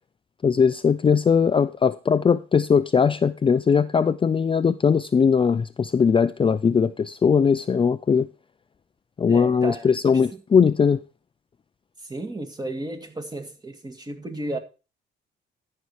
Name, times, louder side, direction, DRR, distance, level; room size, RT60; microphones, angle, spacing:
voice 1, 0.4-8.3 9.2-11.0, left 6 dB, 25° left, 0.4 m, -20 dB
voice 2, 9.3-9.8 12.1-14.6, right 1 dB, 20° right, 2.0 m, -33 dB
13.0 x 5.6 x 4.8 m
cardioid pair, 90°, 20 cm